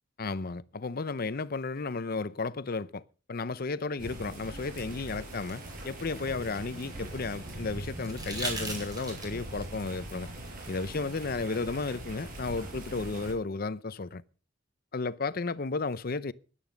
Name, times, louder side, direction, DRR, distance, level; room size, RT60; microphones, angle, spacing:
voice 1, 0.2-3.0 3.3-10.3 10.7-14.2 14.9-16.3, left 3 dB, 50° left, 0.7 m, -33 dB
sound 1, 4.0-13.3, right 1 dB, 50° right, 7.6 m, -41 dB
sound 2, 5.3-7.1 8.0-9.5 11.2-11.3, right 2 dB, 20° right, 6.0 m, -40 dB
16.0 x 11.5 x 5.2 m
head